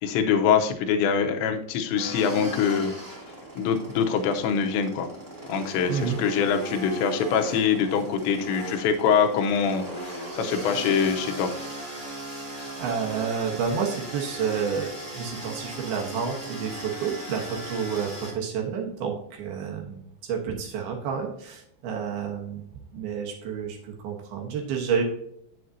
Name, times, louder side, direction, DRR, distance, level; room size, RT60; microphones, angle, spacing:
voice 1, 0.0-2.9 3.6-5.1 5.5-9.9 10.3-11.5, left 7 dB, 85° left, 4 dB, 3.1 m, -24 dB
sound 1, 2.0-18.3, right 1 dB, 5° right, 1.5 m, -37 dB
voice 2, 5.9-6.2 12.3-12.5 12.8-22.6 22.9-25.0, right 6 dB, 70° right, 1 dB, 2.8 m, -30 dB
8.7 x 7.6 x 2.7 m, 0.74 s
omnidirectional pair, 5.1 m